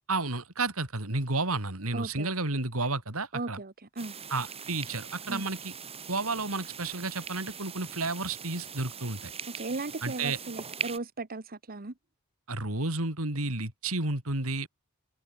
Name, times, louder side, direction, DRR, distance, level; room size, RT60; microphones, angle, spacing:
voice 1, 0.1-3.6 4.3-5.7 6.1-9.3 10.0-10.4 12.5-14.7, right 3 dB, 75° right, 4.2 m, -31 dB
voice 2, 1.9-2.3 3.3-4.2 5.3-5.4 9.5-11.9, right 3 dB, 45° right, 1.4 m, -37 dB
sound 1, 4.0-11.0, right 6 dB, 30° right, 2.3 m, -41 dB
open air
head